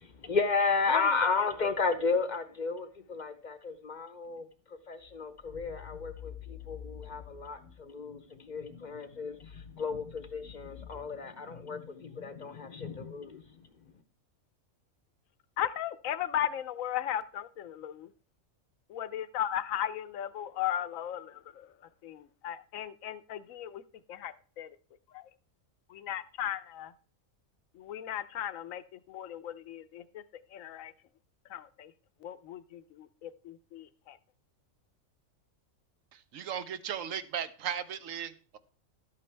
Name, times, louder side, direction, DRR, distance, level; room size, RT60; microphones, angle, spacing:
voice 1, 0.0-13.7, left 4 dB, 45° left, 0.7 m, -33 dB
voice 2, 15.6-18.1 18.9-21.7 22.0-23.8 24.1-24.7 25.1-25.2 25.9-26.9 27.8-28.8 29.1-30.2 30.5-30.9 31.5-31.9 32.2-34.2, left 11 dB, 80° left, 1.0 m, -36 dB
voice 3, 36.1-38.6, right 8 dB, 75° right, 1.1 m, -37 dB
12.0 x 8.5 x 3.3 m
omnidirectional pair, 1.4 m